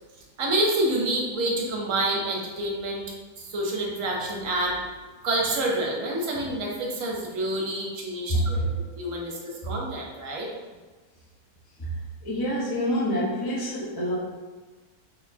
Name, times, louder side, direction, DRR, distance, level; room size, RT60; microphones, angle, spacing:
voice 1, 0.4-3.0 3.4-4.8 5.2-10.5, right 1 dB, 60° right, -1 dB, 1.2 m, -28 dB
voice 2, 8.3-8.7 9.6-9.8 11.8-11.9 12.2-14.2, equal, 20° left, -7 dB, 0.9 m, -27 dB
4.2 x 3.6 x 2.7 m, 1.3 s
omnidirectional pair, 1.6 m